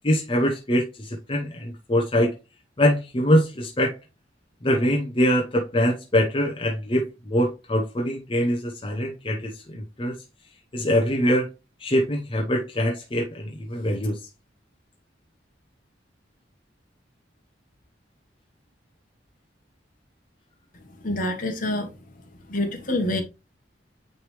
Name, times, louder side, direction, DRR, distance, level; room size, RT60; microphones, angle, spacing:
voice 1, 0.0-2.3 2.8-4.0 4.6-10.2 10.7-11.5 11.8-14.2, equal, 30° left, 0.9 m, -23 dB
voice 2, 21.0-22.0 22.5-23.2, left 1 dB, 50° left, 1.4 m, -26 dB
9.3 x 3.4 x 3.2 m
head